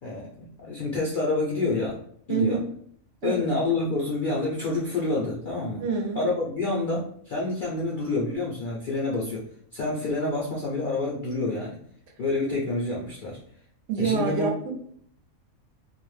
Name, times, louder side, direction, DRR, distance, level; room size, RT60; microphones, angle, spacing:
voice 1, 0.0-2.0 2.3-2.6 3.2-5.8 6.2-9.5 9.7-11.8 12.2-13.4 14.0-14.5, left 2 dB, 65° left, -4 dB, 0.5 m, -28 dB
voice 2, 2.3-2.7 3.2-3.5 5.8-6.3 13.9-14.7, right 5 dB, 70° right, 2 dB, 0.8 m, -27 dB
2.4 x 2.0 x 3.1 m, 0.64 s
omnidirectional pair, 1.5 m